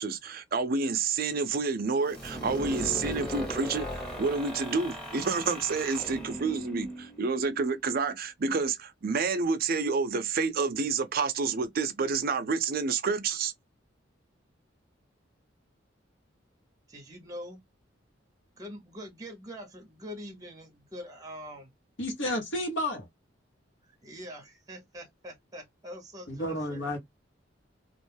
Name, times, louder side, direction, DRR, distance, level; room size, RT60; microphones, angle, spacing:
voice 1, 0.0-13.5, right 4 dB, 50° right, 0.5 m, -29 dB
sound 1, 2.1-7.7, equal, 5° left, 1.0 m, -38 dB
voice 2, 16.9-17.6 18.6-21.7 23.9-27.0, equal, 20° right, 0.7 m, -44 dB
voice 3, 22.0-23.1 26.3-27.0, left 1 dB, 75° left, 1.0 m, -31 dB
2.4 x 2.2 x 3.2 m
head